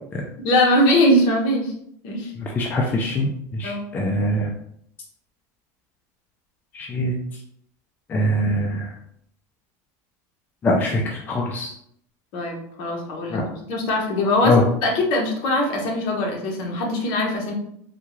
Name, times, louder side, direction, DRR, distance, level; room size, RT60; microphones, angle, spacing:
voice 1, 0.4-1.7 2.0-2.3 3.6-3.9 12.3-17.5, left 1 dB, 55° left, 0 dB, 1.0 m, -21 dB
voice 2, 2.4-4.5 6.8-7.2 8.1-8.9 10.6-11.7 13.3-13.4 14.4-14.6, left 1 dB, 20° left, -1 dB, 0.4 m, -23 dB
3.6 x 2.3 x 3.1 m, 0.68 s
supercardioid pair, 145°, 9 cm